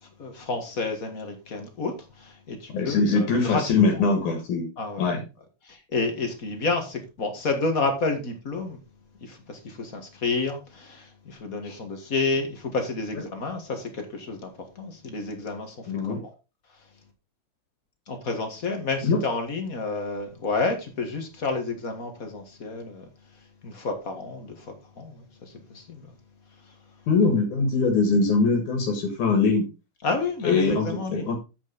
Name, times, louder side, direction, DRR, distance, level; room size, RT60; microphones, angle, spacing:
voice 1, 0.0-3.6 4.8-5.1 5.6-8.8 9.2-16.3 18.1-23.1 23.6-26.1 26.6-26.8 30.0-31.3, left 3 dB, 35° left, 1.6 m, -30 dB
voice 2, 2.7-4.7 5.0-5.2 11.6-11.7 15.9-16.2 19.0-19.2 27.1-29.7 30.4-31.4, left 4 dB, 75° left, 3.1 m, -22 dB
8.4 x 7.3 x 4.0 m
omnidirectional pair, 3.5 m